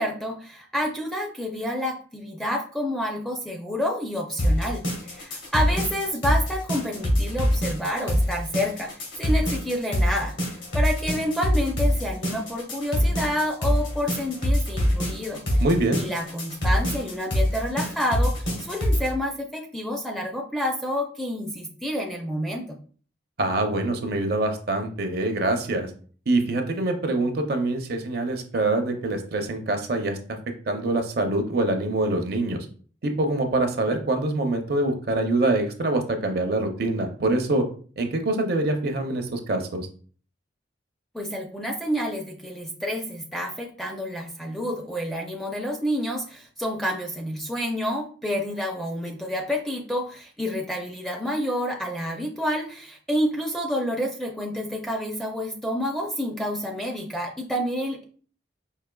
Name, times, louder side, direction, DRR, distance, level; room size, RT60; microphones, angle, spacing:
voice 1, 0.0-15.6 16.0-22.8 41.1-58.0, equal, ahead, 0 dB, 0.4 m, -29 dB
sound 1, 4.4-19.1, equal, 80° left, 1.3 m, -24 dB
voice 2, 15.6-16.0 23.4-25.9 26.3-30.4 30.7-32.7 33.0-37.6 38.0-39.9, right 2 dB, 50° right, 5 dB, 0.5 m, -25 dB
4.7 x 2.7 x 2.2 m, 0.43 s
head